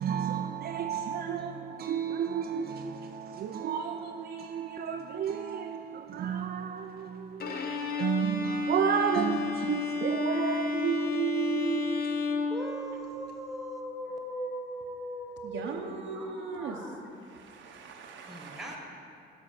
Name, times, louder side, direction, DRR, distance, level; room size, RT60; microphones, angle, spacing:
voice 1, 0.0-12.1, right 8 dB, 55° right, 0.4 m, -32 dB
Bowed string instrument, 7.4-13.3, left 4 dB, 50° left, 0.9 m, -32 dB
voice 2, 12.5-17.0 18.3-18.8, equal, ahead, 1.3 m, -39 dB
voice 3, 15.4-16.8 17.2-18.8, right 4 dB, 70° right, 0.8 m, -40 dB
7.5 x 4.5 x 6.4 m
cardioid pair, 90°, 20 cm